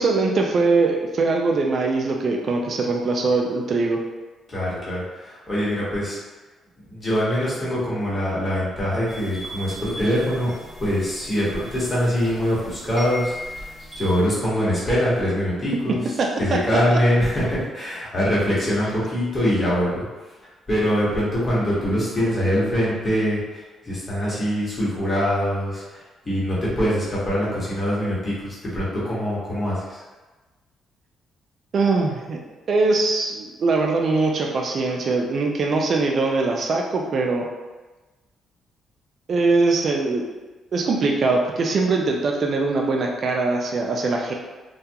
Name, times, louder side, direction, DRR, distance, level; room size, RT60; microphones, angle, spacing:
voice 1, 0.0-4.0 16.2-16.3 16.9-17.0 31.7-32.4 32.7-37.5 39.3-40.3 40.7-44.3, right 3 dB, 55° right, 0 dB, 0.3 m, -22 dB
voice 2, 4.5-6.2 6.9-10.5 10.8-16.1 16.4-20.0 20.7-30.0, equal, 30° left, -8 dB, 1.1 m, -23 dB
sound 1, 9.1-14.2, equal, 25° right, 0.9 m, -38 dB
2.3 x 2.2 x 2.7 m, 1.2 s
cardioid pair, 90°, 0 cm